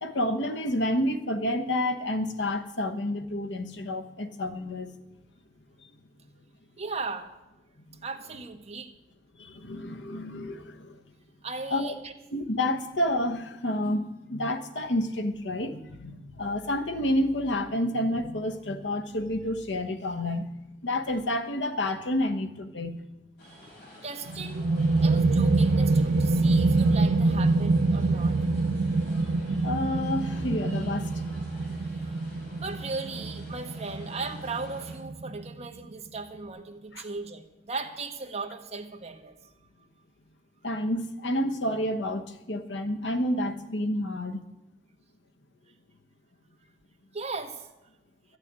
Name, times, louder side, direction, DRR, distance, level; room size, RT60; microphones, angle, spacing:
voice 1, 0.0-4.9 9.4-11.0 11.7-11.9 12.3-23.0 29.3-31.1 36.9-37.0 40.6-44.4, left 1 dB, 90° left, 6 dB, 1.1 m, -29 dB
voice 2, 6.8-7.3 8.0-8.9 11.4-12.1 23.4-23.7 24.0-24.7 25.0-28.5 32.6-39.4 47.1-47.7, right 4 dB, 35° right, 4 dB, 1.3 m, -37 dB
sound 1, 23.4-35.0, left 1 dB, 60° left, 4.7 m, -49 dB
sound 2, 24.3-35.6, right 3 dB, 75° right, 0.6 m, -25 dB
13.0 x 6.6 x 9.6 m, 0.96 s
head